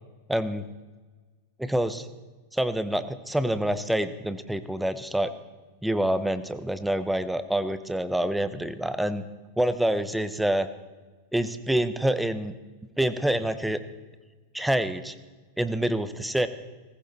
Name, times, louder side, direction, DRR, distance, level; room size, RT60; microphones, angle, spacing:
voice 1, 0.3-0.7 1.6-2.1 2.5-5.3 5.8-9.2 9.6-10.7 11.3-12.5 13.0-13.8 14.5-15.1 15.6-16.5, right 1 dB, 5° right, 12 dB, 0.9 m, -26 dB
19.5 x 16.0 x 4.2 m, 1.3 s
figure-of-eight pair, 90°, 0 cm